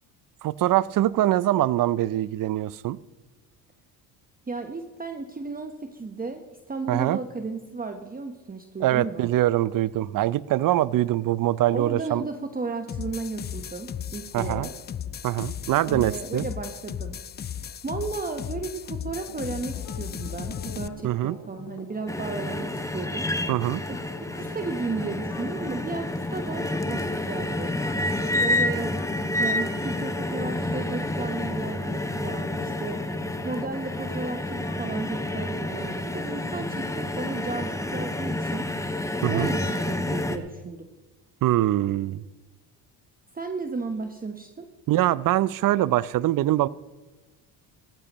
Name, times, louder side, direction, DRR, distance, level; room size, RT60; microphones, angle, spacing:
voice 1, 0.4-3.0 6.9-7.2 8.8-12.2 14.3-14.7 15.2-16.5 21.0-21.4 23.5-23.8 39.2-39.5 41.4-42.2 44.9-46.7, right 14 dB, 45° right, 20 dB, 0.6 m, -23 dB
voice 2, 4.5-9.3 11.7-14.7 15.8-17.2 17.5-23.3 23.9-24.0 24.3-27.7 28.4-29.0 29.4-33.1 33.4-38.7 39.3-40.9 43.3-44.7, right 4 dB, 20° right, 6 dB, 1.1 m, -34 dB
sound 1, 12.9-20.9, left 9 dB, 25° left, 0.4 m, -35 dB
sound 2, 19.1-37.5, left 5 dB, 75° left, 3.0 m, -45 dB
sound 3, 22.1-40.4, left 1 dB, 5° left, 1.2 m, -29 dB
18.0 x 15.0 x 3.1 m, 1.2 s
supercardioid pair, 75°, 48 cm